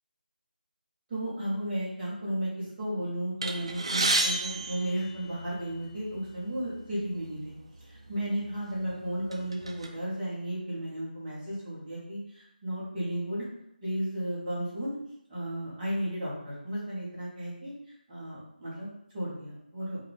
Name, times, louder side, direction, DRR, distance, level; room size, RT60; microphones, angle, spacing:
voice 1, 1.1-13.4 13.8-15.0 15.3-17.7 18.1-20.0, right 1 dB, 10° right, -11 dB, 0.8 m, -34 dB
sound 1, 3.4-5.7 6.6-6.7 7.0-7.2 8.1-8.2 8.7-9.9, right 2 dB, 35° right, 0.3 m, -30 dB
4.2 x 2.3 x 3.2 m, 0.77 s
figure-of-eight pair, 180°, 5 cm